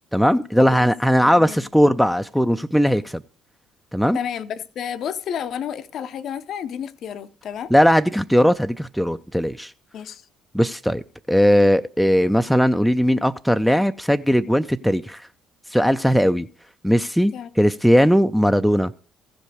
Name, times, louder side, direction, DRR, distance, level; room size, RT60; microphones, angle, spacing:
voice 1, 0.1-3.2 3.9-4.2 7.7-9.7 10.5-11.0 11.3-15.3 15.7-16.5 16.8-18.9, equal, ahead, 0.4 m, -18 dB
voice 2, 1.2-1.9 4.1-7.7 9.9-10.2 17.3-17.5, left 8 dB, 50° left, 0.5 m, -31 dB
15.0 x 5.2 x 4.8 m
figure-of-eight pair, 50°, 0 cm